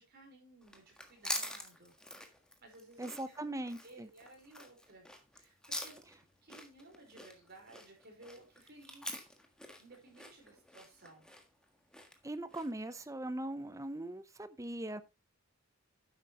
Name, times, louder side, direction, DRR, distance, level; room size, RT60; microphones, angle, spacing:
voice 1, 0.0-1.9 2.6-5.1 5.3-5.9 6.4-9.3 9.8-11.3, right 2 dB, 50° right, 4.7 m, -57 dB
sound 1, 0.6-12.9, left 1 dB, 5° left, 1.5 m, -45 dB
voice 2, 3.0-4.1 12.2-15.0, right 1 dB, 15° right, 0.7 m, -40 dB
10.5 x 8.3 x 3.0 m
head